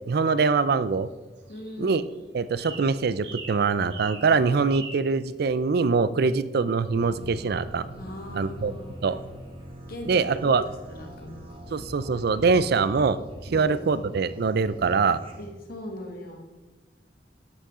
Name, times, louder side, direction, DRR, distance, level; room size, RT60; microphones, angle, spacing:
voice 1, 0.1-1.1 1.8-2.0 2.3-7.9 8.3-8.7 9.0-9.2 10.1-10.6 11.7-13.2 13.5-15.2, right 4 dB, 60° right, 15 dB, 0.4 m, -23 dB
sound 1, 1.4-2.1 2.6-2.9 3.2-3.6 3.9-4.3 4.7-5.0, right 4 dB, 85° right, 1.7 m, -40 dB
voice 2, 1.5-2.0 8.0-9.0 9.9-10.3 10.7-11.6 13.5-13.8 15.4-16.5, left 1 dB, 60° left, 3 dB, 1.7 m, -40 dB
sound 2, 7.0-15.5, equal, 30° right, 1.4 m, -43 dB
11.5 x 8.3 x 3.7 m, 1.2 s
head